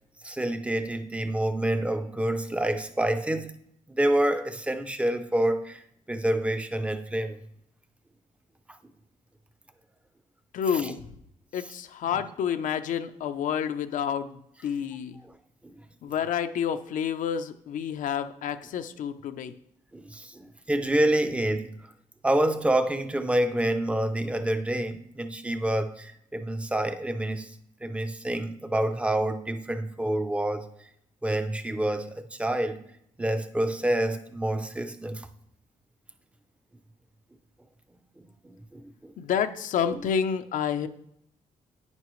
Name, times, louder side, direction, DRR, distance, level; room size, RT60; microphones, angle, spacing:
voice 1, 0.2-3.5 3.9-5.8 6.1-7.4 10.7-10.9 12.1-12.2 15.6-15.7 19.9-21.7 22.2-27.6 27.8-30.7 31.2-32.8 33.2-35.3 38.2-39.1 39.9-40.0, right 1 dB, 10° right, 0.6 m, -27 dB
voice 2, 10.5-11.1 11.5-15.2 16.0-19.5 39.2-40.9, left 8 dB, 75° left, 0.7 m, -29 dB
10.5 x 9.5 x 3.2 m
cardioid pair, 150°, 14 cm